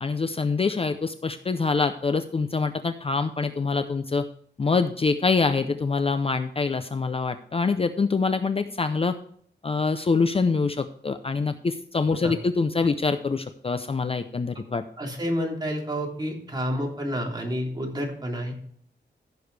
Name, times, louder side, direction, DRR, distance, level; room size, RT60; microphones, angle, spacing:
voice 1, 0.0-4.3 4.6-9.2 9.6-14.8, left 4 dB, 30° left, 9 dB, 0.6 m, -25 dB
voice 2, 15.0-18.5, equal, 20° right, -1 dB, 3.1 m, -29 dB
15.0 x 6.9 x 3.3 m, 0.62 s
wide cardioid pair, 125°, 19 cm